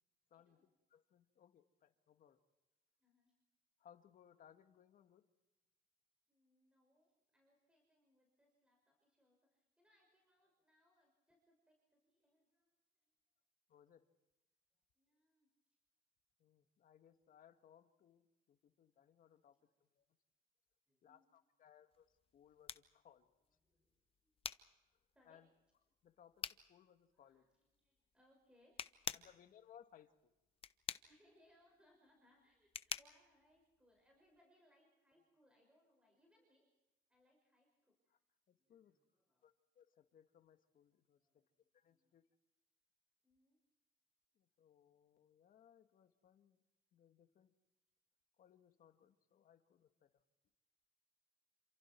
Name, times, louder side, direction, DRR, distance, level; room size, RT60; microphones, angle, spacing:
voice 1, 0.3-0.6 3.0-3.3 6.3-13.1 14.9-15.5 19.6-19.7 20.9-21.3 23.6-24.3 25.1-25.4 27.1-29.3 31.1-36.7 37.1-38.2 38.6-39.5 41.1-42.2 43.2-43.6, left 1 dB, 5° right, 0 dB, 6.2 m, -75 dB
voice 2, 0.9-2.4 3.8-5.2 13.7-14.1 16.4-19.6 19.9-20.1 21.0-22.1 22.3-23.3 25.3-25.5 26.0-27.5 29.1-30.3 38.1-38.2 38.5-38.9 39.4-41.4 41.7-42.2 44.4-46.6 46.9-47.5 48.4-50.1, left 9 dB, 55° left, 8 dB, 1.8 m, -66 dB
sound 1, 21.9-34.4, left 7 dB, 35° left, 0.9 m, -50 dB
28.5 x 27.5 x 4.6 m, 1.0 s
cardioid pair, 110°, 17 cm